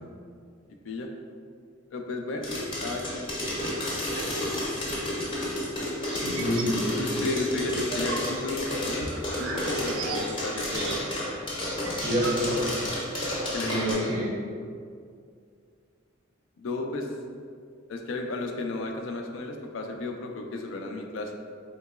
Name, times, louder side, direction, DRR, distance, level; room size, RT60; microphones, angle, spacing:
voice 1, 1.9-2.5 2.8-3.3 6.4-6.5 7.0-11.0 13.5-14.0 16.6-17.1 17.9-21.3, left 2 dB, 65° left, 3 dB, 0.3 m, -33 dB
sound 1, 2.4-13.9, left 1 dB, 25° left, 0.6 m, -31 dB
voice 2, 6.1-6.8 12.0-12.7 13.6-14.3, equal, 25° right, -6 dB, 0.5 m, -28 dB
sound 2, 6.2-6.8 7.1-11.3 11.6-11.7 11.8-12.8, right 3 dB, 80° right, 0.4 m, -37 dB
3.7 x 2.8 x 2.3 m, 2.2 s
head